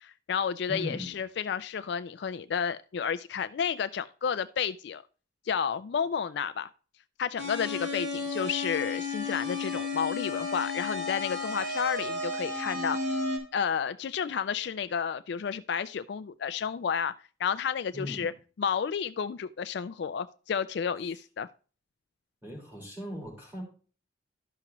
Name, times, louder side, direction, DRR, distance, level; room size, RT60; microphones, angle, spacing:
voice 1, 0.0-5.0 5.5-6.7 7.2-13.2 13.5-17.1 17.4-18.3 18.6-21.5, left 7 dB, 60° left, 13 dB, 0.3 m, -31 dB
voice 2, 0.7-1.2 17.9-18.4 22.4-23.6, left 1 dB, 10° right, -3 dB, 3.8 m, -38 dB
sound 1, 7.4-13.4, left 3 dB, 65° right, 3.8 m, -33 dB
12.5 x 5.9 x 3.0 m, 0.37 s
head